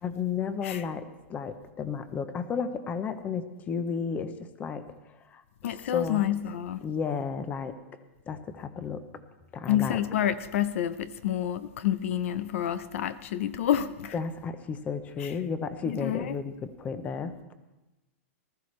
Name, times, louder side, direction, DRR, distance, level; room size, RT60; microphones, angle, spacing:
voice 1, 0.0-4.9 5.3-5.4 5.9-6.2 6.8-7.8 8.3-9.1 9.5-10.0 14.1-17.5, left 6 dB, 20° left, 0.7 m, -33 dB
voice 2, 5.6-6.8 9.7-14.1 15.2-15.3 15.9-16.3, left 11 dB, 70° left, 0.7 m, -28 dB
19.5 x 13.5 x 3.2 m
supercardioid pair, 150°, 7 cm